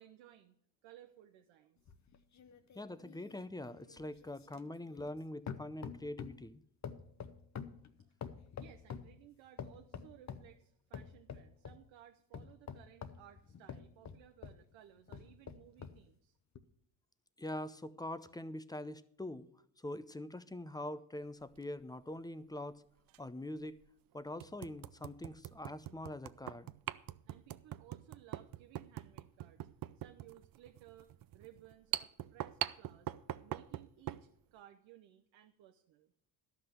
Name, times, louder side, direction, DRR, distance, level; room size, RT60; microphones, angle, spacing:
voice 1, 0.0-1.9 8.1-8.2 8.6-16.4 27.3-29.7 29.9-33.1 33.4-36.1, right 12 dB, 75° right, 6 dB, 0.9 m, -59 dB
sound 1, 1.9-5.2 5.5-6.5 6.8-9.2 9.6-10.5 10.9-11.8 12.3-14.6 15.1-16.0 16.6-16.7, left 7 dB, 35° left, 0.9 m, -47 dB
voice 2, 2.7-6.6 17.4-19.5 19.8-22.8 23.2-23.8 24.1-26.7, left 1 dB, 10° left, 14 dB, 0.6 m, -44 dB
sound 2, 21.4-21.6 23.1-23.2 23.8-23.9 24.4-34.3, right 13 dB, 50° right, 0.5 m, -43 dB
11.5 x 6.0 x 8.0 m, 0.69 s
supercardioid pair, 70°, 46 cm